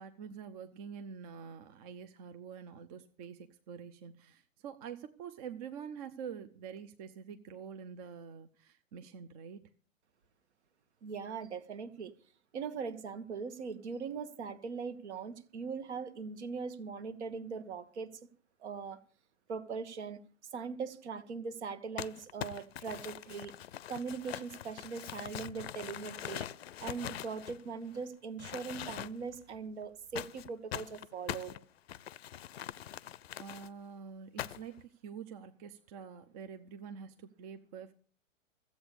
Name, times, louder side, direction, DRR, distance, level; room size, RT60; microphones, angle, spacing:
voice 1, 0.0-9.7 33.4-37.9, right 7 dB, 30° right, 0.7 m, -46 dB
voice 2, 11.0-12.1 12.5-18.2 18.6-19.0 19.5-20.2 20.5-23.5 23.9-26.5 26.8-31.5, right 5 dB, 55° right, 1.5 m, -40 dB
Crumpling crinkling, 22.0-28.0 28.4-29.4 30.2-33.7 34.4-34.8, left 11 dB, 50° left, 0.6 m, -43 dB
14.0 x 8.2 x 6.8 m
figure-of-eight pair, 110°, 40 cm